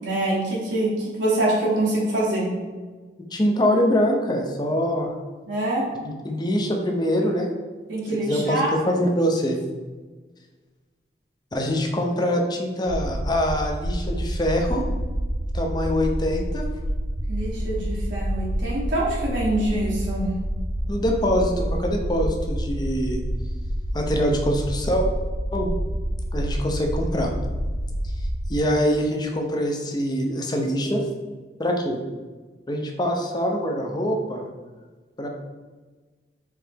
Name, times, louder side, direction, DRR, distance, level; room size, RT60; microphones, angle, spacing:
voice 1, 0.0-2.5 5.5-5.9 7.9-8.7 17.3-20.3, right 1 dB, 80° right, -6 dB, 1.2 m, -25 dB
voice 2, 3.3-5.1 6.0-7.5 8.1-9.6 11.5-14.8 15.5-16.6 20.9-23.2 23.9-25.1 25.5-25.7 26.3-27.3 28.5-31.0 31.6-32.0 32.7-34.4 35.2-35.3, equal, 25° left, 2 dB, 0.6 m, -24 dB
sound 1, 12.9-28.6, equal, 65° right, 0.5 m, -28 dB
4.7 x 3.3 x 3.5 m, 1.4 s
head